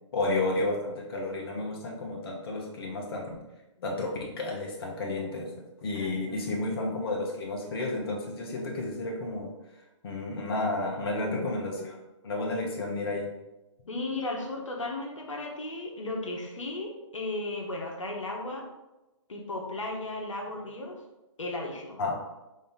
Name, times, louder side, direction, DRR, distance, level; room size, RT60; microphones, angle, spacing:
voice 1, 0.1-3.4 3.8-5.5 5.8-9.5 10.0-12.0 12.2-13.3 22.0-22.1, left 2 dB, 50° left, -1 dB, 0.9 m, -31 dB
voice 2, 5.9-6.7 11.3-11.5 13.8-18.6 19.3-21.0 21.4-22.0, left 2 dB, 80° left, 0 dB, 1.0 m, -35 dB
5.2 x 2.7 x 3.7 m, 1.0 s
figure-of-eight pair, 140°, 16 cm